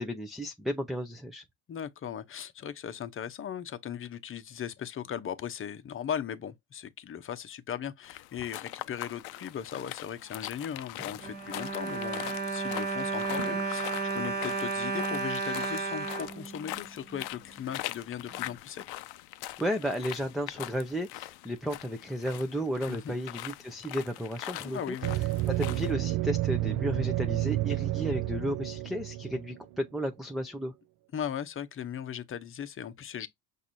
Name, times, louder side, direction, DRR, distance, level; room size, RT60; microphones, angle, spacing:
voice 1, 0.0-1.4 19.6-24.8 25.5-30.7, equal, ahead, 0.5 m, -33 dB
voice 2, 1.7-18.9 22.9-23.2 24.6-25.1 31.1-33.3, left 9 dB, 35° left, 0.8 m, -38 dB
sound 1, 8.0-25.9, left 18 dB, 75° left, 0.6 m, -42 dB
Bowed string instrument, 11.0-17.2 17.9-18.0 18.3-18.4, right 4 dB, 25° right, 1.2 m, -33 dB
sound 2, 25.0-29.8, right 16 dB, 55° right, 0.5 m, -30 dB
5.9 x 2.7 x 2.6 m
cardioid pair, 110°, 38 cm